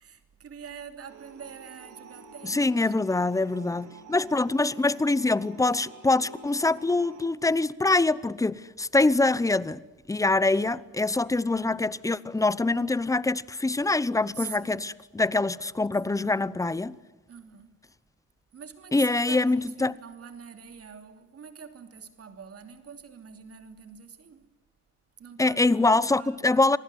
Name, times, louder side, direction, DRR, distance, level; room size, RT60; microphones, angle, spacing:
voice 1, 0.0-2.9 14.3-14.9 17.3-17.8 18.5-24.5 25.2-26.8, right 7 dB, 50° right, 3.0 m, -45 dB
sound 1, 1.1-7.2, right 3 dB, 75° right, 3.8 m, -49 dB
voice 2, 2.4-9.8 10.1-16.9 18.9-19.9 25.4-26.8, left 2 dB, 10° left, 0.8 m, -24 dB
27.0 x 19.5 x 9.7 m
cardioid pair, 90°, 30 cm